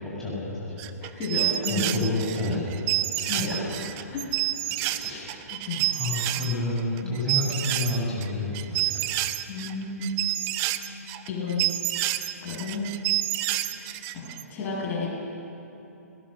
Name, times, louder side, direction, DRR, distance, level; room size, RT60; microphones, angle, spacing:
voice 1, 0.0-0.8 1.7-4.1 4.7-5.4 5.8-9.1, left 2 dB, 5° left, -8 dB, 7.4 m, -30 dB
sound 1, 0.8-6.5 6.8-8.3 8.5-14.4, right 16 dB, 25° right, 0.8 m, -28 dB
voice 2, 1.0-2.0 3.3-3.5 4.1-4.3 5.1-5.9 7.0-7.2 9.5-10.2 11.3-11.6 12.4-12.9 14.1-15.1, left 3 dB, 25° left, -4 dB, 7.8 m, -32 dB
29.5 x 19.0 x 6.8 m, 2.9 s
figure-of-eight pair, 120°, 9 cm